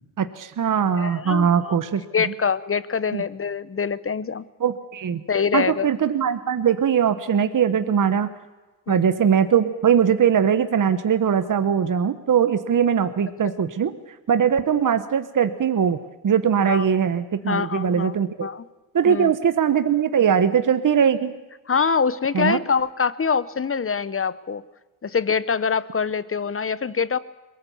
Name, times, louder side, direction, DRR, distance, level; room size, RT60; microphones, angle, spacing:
voice 1, 0.2-2.3 3.1-3.2 4.6-5.2 5.5-8.3 8.9-13.9 14.3-16.0 16.2-18.5 18.9-21.3 22.3-22.6, right 7 dB, 50° right, 11 dB, 1.2 m, -21 dB
voice 2, 0.9-1.8 2.1-4.4 5.3-5.9 8.9-9.0 13.4-13.5 16.6-16.8 17.5-18.1 18.4-18.6 19.0-19.3 21.7-24.6 25.0-27.2, left 6 dB, 30° left, 17 dB, 0.9 m, -24 dB
22.0 x 18.5 x 7.1 m, 1.2 s
cardioid pair, 70°, 41 cm